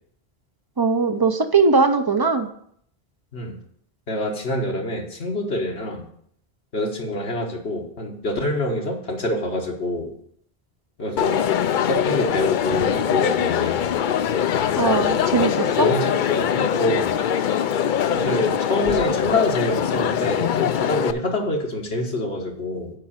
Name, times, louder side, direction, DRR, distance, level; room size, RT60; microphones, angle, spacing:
voice 1, 0.8-2.5 14.8-15.9, right 4 dB, 25° right, 9 dB, 0.6 m, -20 dB
voice 2, 4.1-6.1 6.7-10.1 11.0-11.5 11.8-14.0 15.7-17.2 18.1-22.9, left 1 dB, 80° left, -1 dB, 1.7 m, -26 dB
Crowd, 11.2-21.1, left 9 dB, 60° left, 0.6 m, -22 dB
7.5 x 5.3 x 7.3 m, 0.67 s
omnidirectional pair, 1.1 m